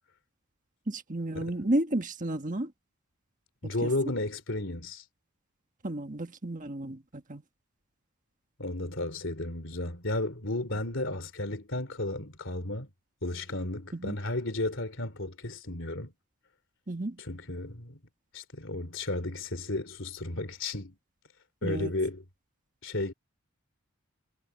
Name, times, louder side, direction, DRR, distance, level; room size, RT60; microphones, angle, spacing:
voice 1, 0.9-2.7 3.8-3.9 5.8-7.4 13.9-14.2 16.9-17.2 21.6-21.9, right 1 dB, 35° right, 1.5 m, -32 dB
voice 2, 3.6-5.0 8.6-12.9 13.2-16.1 17.2-18.0 18.3-21.0 21.6-22.2 22.8-23.1, left 2 dB, 55° left, 3.5 m, -33 dB
head